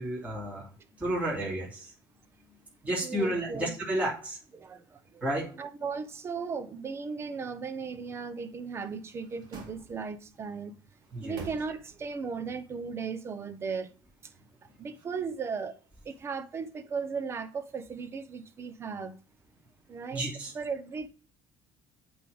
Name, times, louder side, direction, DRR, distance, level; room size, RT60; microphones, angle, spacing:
voice 1, 0.0-1.9 2.8-4.4 5.2-5.5 11.1-11.4 20.1-20.5, right 1 dB, 20° right, 2.8 m, -32 dB
voice 2, 3.0-3.7 4.5-5.2 5.6-10.7 11.2-13.9 14.8-15.8 16.0-19.2 19.9-20.2 20.5-21.1, right 5 dB, 35° right, 0.9 m, -36 dB
sound 1, 8.6-10.3 10.9-12.2 12.5-12.6, right 3 dB, 65° right, 1.9 m, -49 dB
8.2 x 3.6 x 5.4 m
cardioid pair, 105°, 8 cm